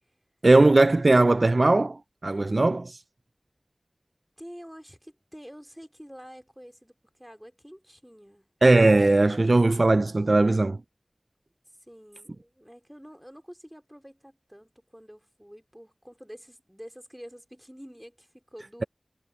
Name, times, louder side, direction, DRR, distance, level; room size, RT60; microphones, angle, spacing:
voice 1, 0.4-3.0 8.6-10.8, right 2 dB, 60° right, 0.3 m, -19 dB
voice 2, 4.4-8.5 11.7-18.9, equal, 5° right, 3.0 m, -48 dB
wide cardioid pair, 50°, 0 cm